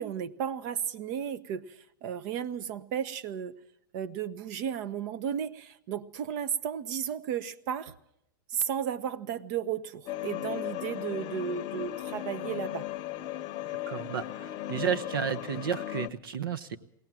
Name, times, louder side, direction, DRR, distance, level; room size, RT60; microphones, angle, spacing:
voice 1, 0.0-3.6 3.9-7.9 8.5-12.9, right 8 dB, 55° right, 13 dB, 1.1 m, -34 dB
sound 1, 10.1-16.1, left 14 dB, 40° left, 0.8 m, -36 dB
voice 2, 13.9-16.8, right 7 dB, 75° right, 13 dB, 1.3 m, -32 dB
21.5 x 18.0 x 7.7 m, 0.78 s
hypercardioid pair, 115°, 12 cm